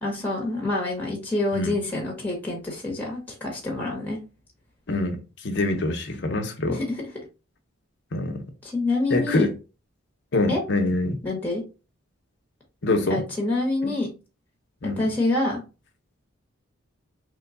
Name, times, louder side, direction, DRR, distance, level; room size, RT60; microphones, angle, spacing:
voice 1, 0.0-4.2 6.7-7.0 8.6-9.5 10.5-10.6 11.2-11.6 13.1-14.1 14.8-15.6, left 2 dB, 10° left, 0.9 m, -26 dB
voice 2, 4.9-5.2 5.4-6.8 8.1-8.4 9.1-9.5 10.3-11.2 12.8-13.2 13.8-13.9 14.8-15.1, left 2 dB, 55° left, 0.6 m, -24 dB
3.2 x 2.2 x 3.7 m
head